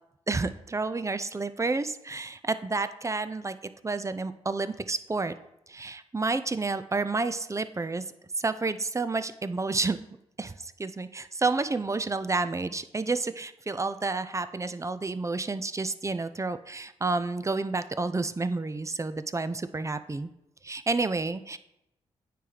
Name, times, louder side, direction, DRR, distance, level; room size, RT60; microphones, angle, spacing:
voice 1, 0.3-3.6 3.8-5.3 5.7-8.0 8.4-10.0 10.4-20.3 20.6-21.6, right 3 dB, 20° right, 12 dB, 0.5 m, -30 dB
9.2 x 3.1 x 3.9 m, 0.85 s
hypercardioid pair, 40°, 14 cm